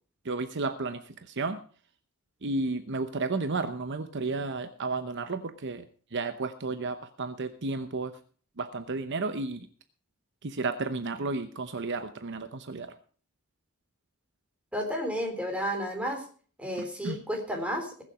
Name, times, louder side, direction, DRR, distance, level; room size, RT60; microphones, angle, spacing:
voice 1, 0.2-1.6 2.4-5.9 6.1-8.1 8.6-9.7 10.4-12.9 16.8-17.2, right 3 dB, 55° right, 10 dB, 0.9 m, -32 dB
voice 2, 14.7-16.2 16.6-18.0, equal, 5° right, 2 dB, 3.5 m, -32 dB
20.5 x 7.4 x 4.9 m, 0.42 s
head